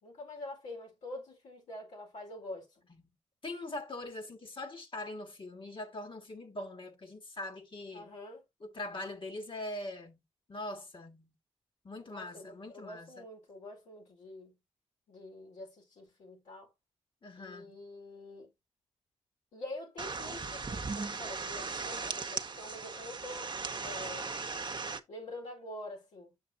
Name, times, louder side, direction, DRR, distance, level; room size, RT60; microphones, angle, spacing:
voice 1, 0.0-2.8 7.9-8.4 12.1-14.6 15.1-16.7 17.4-18.5 19.5-23.5 23.8-24.4 25.1-26.3, left 1 dB, 85° left, 4.4 m, -46 dB
voice 2, 3.4-8.1 8.6-10.2 10.5-11.3 11.8-13.2 17.2-17.7, left 2 dB, 45° left, 1.8 m, -42 dB
sound 1, 20.0-25.0, right 4 dB, 40° right, 0.9 m, -38 dB
7.2 x 6.7 x 2.8 m
supercardioid pair, 45°, 12 cm